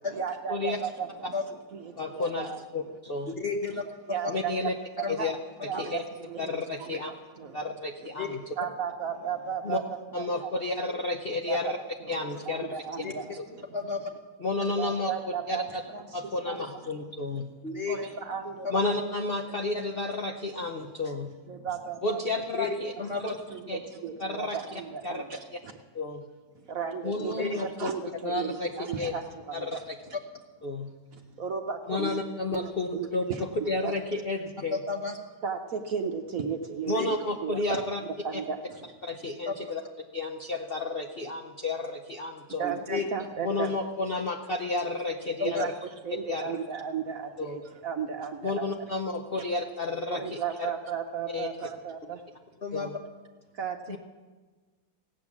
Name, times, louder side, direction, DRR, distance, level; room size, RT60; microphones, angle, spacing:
voice 1, 0.1-2.9 3.2-3.3 4.1-4.6 5.0-5.3 5.6-7.8 8.5-9.8 10.1-10.8 11.4-11.7 12.0-13.6 14.8-16.8 17.9-18.8 21.5-22.2 23.2-25.8 26.7-30.2 31.1-32.0 32.5-33.9 35.4-37.8 38.2-38.9 42.6-43.8 45.4-48.9 49.3-49.5 50.1-52.2 53.5-54.0, right 6 dB, 60° right, 4 dB, 1.0 m, -35 dB
voice 2, 2.0-2.5 2.7-3.4 4.3-4.7 5.1-5.4 5.8-6.0 6.4-7.1 7.5-8.4 9.6-9.8 10.1-11.8 12.1-12.7 14.4-15.8 16.1-17.5 18.7-21.4 22.0-22.9 23.2-23.3 23.7-23.8 24.2-24.6 25.0-25.2 25.9-26.3 27.0-27.9 28.2-28.7 29.0-29.1 29.5-30.0 30.6-30.9 31.9-34.8 36.9-38.0 38.3-38.4 39.0-39.8 40.1-42.7 43.4-45.7 46.3-46.6 47.4-47.6 48.4-50.2 50.6-50.7 51.3-51.5 52.7-53.0 53.9-54.0, left 2 dB, 75° left, 3 dB, 0.5 m, -31 dB
voice 3, 3.4-3.8 5.0-5.2 5.7-5.8 8.2-8.3 13.0-13.1 13.7-14.1 17.6-18.0 22.6-22.7 23.0-23.2 27.2-27.5 32.0-32.1 34.7-35.2 36.9-37.1 39.5-39.6 42.6-43.0 45.5-45.6 52.6-52.9, left 4 dB, 40° left, 3 dB, 0.9 m, -32 dB
16.5 x 8.7 x 7.2 m, 1.3 s
omnidirectional pair, 2.1 m